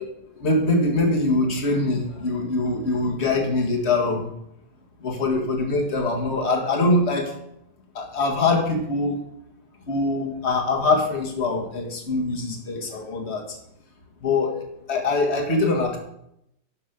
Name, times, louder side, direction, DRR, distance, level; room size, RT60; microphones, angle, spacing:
voice 1, 0.4-4.3 5.0-7.3 8.0-9.2 9.9-13.4 14.2-16.0, left 2 dB, 35° left, 2 dB, 1.9 m, -23 dB
12.5 x 6.4 x 5.2 m, 0.77 s
omnidirectional pair, 2.0 m